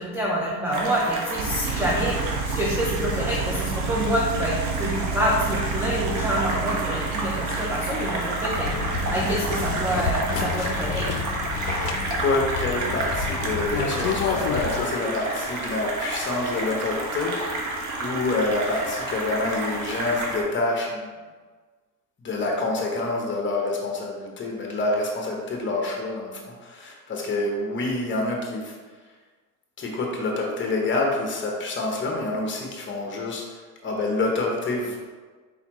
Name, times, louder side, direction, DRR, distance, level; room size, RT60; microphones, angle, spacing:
voice 1, 0.0-2.2 2.5-8.7 9.1-11.1, equal, 5° right, -4 dB, 0.3 m, -27 dB
sound 1, 0.7-20.4, right 2 dB, 40° right, 1.0 m, -31 dB
sound 2, 1.3-10.2, right 4 dB, 60° right, 0.8 m, -30 dB
sound 3, 8.5-14.9, left 5 dB, 50° left, 0.6 m, -29 dB
voice 2, 12.2-17.5 18.0-21.1 22.2-28.7 29.8-35.0, left 2 dB, 25° left, 0 dB, 1.1 m, -27 dB
4.2 x 4.1 x 3.0 m, 1.4 s
supercardioid pair, 110°, 46 cm